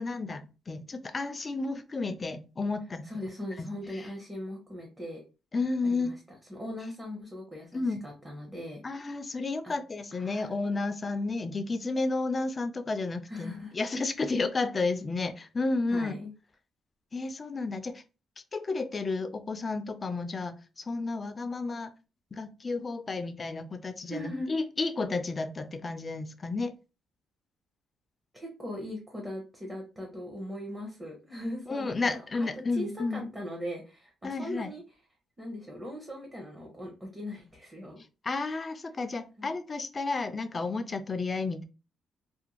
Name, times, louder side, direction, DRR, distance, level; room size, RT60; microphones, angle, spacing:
voice 1, 0.0-3.1 3.6-3.7 3.9-4.1 5.5-6.1 7.7-8.0 8.8-16.1 17.1-18.0 18.5-21.9 22.3-26.7 31.7-33.2 34.2-34.7 38.2-41.6, left 3 dB, 30° left, 0.4 m, -32 dB
voice 2, 3.0-5.2 5.8-6.1 6.5-8.8 9.6-9.8 10.1-10.5 13.3-13.7 15.9-16.3 24.1-24.5 28.3-32.2 32.7-34.8 35.4-38.0 39.4-39.5, left 1 dB, 20° right, 0.8 m, -39 dB
2.5 x 2.2 x 2.9 m
cardioid pair, 90°, 0 cm